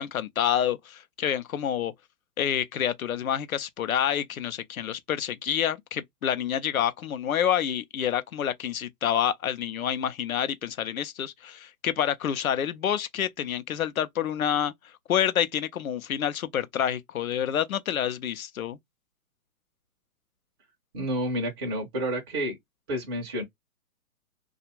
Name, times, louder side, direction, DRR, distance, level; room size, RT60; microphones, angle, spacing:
voice 1, 0.0-1.9 2.4-14.7 15.1-18.8, left 9 dB, 70° left, 0.7 m, -28 dB
voice 2, 20.9-22.6 22.9-23.4, equal, 20° right, 0.5 m, -29 dB
2.5 x 2.4 x 2.9 m
hypercardioid pair, 140°, 44 cm